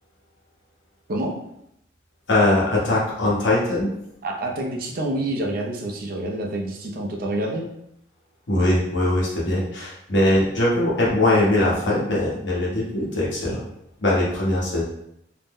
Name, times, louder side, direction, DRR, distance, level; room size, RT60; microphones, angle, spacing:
voice 1, 2.3-3.9 8.5-13.6 14.0-14.8, left 1 dB, 65° left, -5 dB, 1.0 m, -21 dB
voice 2, 4.2-7.7, right 1 dB, 50° right, 0 dB, 0.5 m, -27 dB
2.6 x 2.1 x 3.5 m, 0.76 s
head